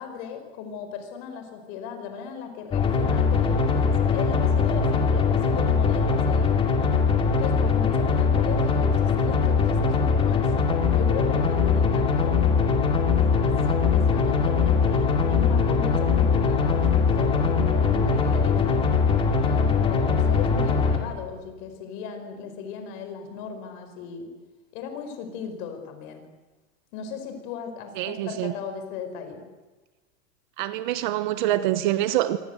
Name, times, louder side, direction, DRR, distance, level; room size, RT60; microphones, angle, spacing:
voice 1, 0.0-6.6 7.4-10.5 10.9-12.4 13.2-18.9 19.4-24.3 24.7-26.2 26.9-29.4, left 6 dB, 35° left, 4.9 m, -37 dB
sound 1, 2.7-21.0, left 5 dB, 15° left, 2.5 m, -21 dB
voice 2, 28.0-28.5 30.6-32.4, right 14 dB, 40° right, 1.1 m, -25 dB
26.5 x 25.5 x 8.0 m
supercardioid pair, 170°, 39 cm